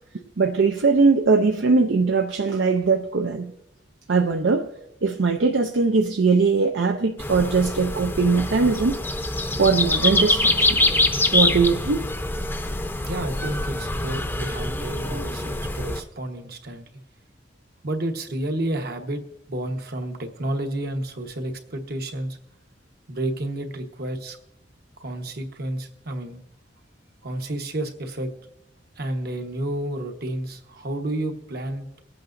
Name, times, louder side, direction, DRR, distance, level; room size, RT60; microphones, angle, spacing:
voice 1, 0.4-3.5 4.1-4.7 5.0-9.0 9.6-10.8 11.3-12.1, right 4 dB, 80° right, 0.6 m, -20 dB
sound 1, 7.2-16.0, left 2 dB, 10° left, 0.6 m, -24 dB
voice 2, 13.0-16.9 17.8-19.2 19.5-22.4 23.1-24.4 25.0-26.4 27.2-28.3 29.0-32.0, right 1 dB, 60° right, 1.2 m, -30 dB
24.5 x 8.5 x 2.6 m
head